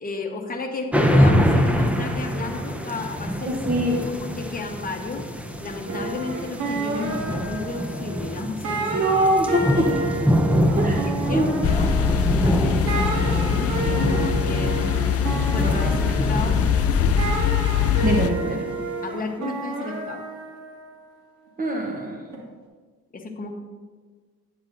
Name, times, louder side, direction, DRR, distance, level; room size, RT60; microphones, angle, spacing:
voice 1, 0.0-3.6 4.0-5.2 5.6-9.1 9.5-10.0 10.7-11.9 12.3-17.1 19.0-20.2 23.1-23.5, left 3 dB, 30° left, 2 dB, 1.1 m, -33 dB
sound 1, 0.9-18.7, equal, 5° right, 0.7 m, -25 dB
voice 2, 3.4-4.0 8.9-9.9 10.5-11.0 11.3-11.5 18.0-18.7 21.6-22.3, right 1 dB, 30° right, 1 dB, 0.9 m, -23 dB
sound 2, 5.8-8.4 8.6-12.6 12.9-21.0 22.3-22.4, right 3 dB, 75° right, 1.9 m, -31 dB
sound 3, 11.6-18.3, left 8 dB, 50° left, 0.5 m, -22 dB
9.5 x 8.5 x 2.6 m, 1.5 s
cardioid pair, 90°, 30 cm